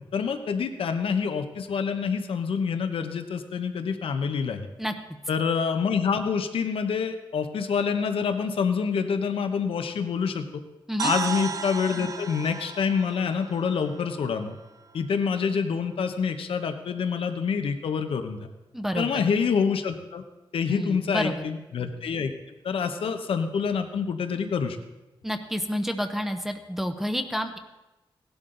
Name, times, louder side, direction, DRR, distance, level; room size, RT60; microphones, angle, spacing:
voice 1, 0.1-4.7 5.3-10.6 11.0-14.5 14.9-18.5 18.9-20.2 20.5-22.3 22.6-24.8, left 6 dB, 85° left, 7 dB, 1.0 m, -27 dB
sound 1, 11.0-14.9, right 5 dB, 40° right, 0.6 m, -35 dB
voice 2, 18.7-19.1 20.7-21.4 25.2-27.6, equal, 5° right, 5 dB, 0.7 m, -29 dB
17.5 x 12.0 x 4.0 m, 1.0 s
wide cardioid pair, 135°, 9 cm